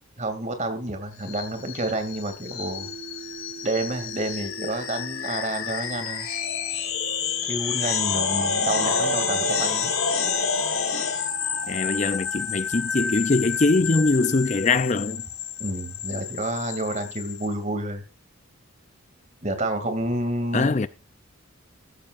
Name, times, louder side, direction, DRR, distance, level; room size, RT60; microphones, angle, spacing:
voice 1, 0.2-2.9 3.6-6.3 7.5-9.9 15.6-18.0 19.4-20.7, right 1 dB, 35° right, 2.5 m, -29 dB
sound 1, 1.2-17.5, left 6 dB, 75° left, 2.7 m, -29 dB
sound 2, 2.8-11.6, right 7 dB, 50° right, 3.4 m, -46 dB
voice 2, 11.7-15.2 20.5-20.9, left 3 dB, 35° left, 0.5 m, -22 dB
14.5 x 13.5 x 2.5 m
head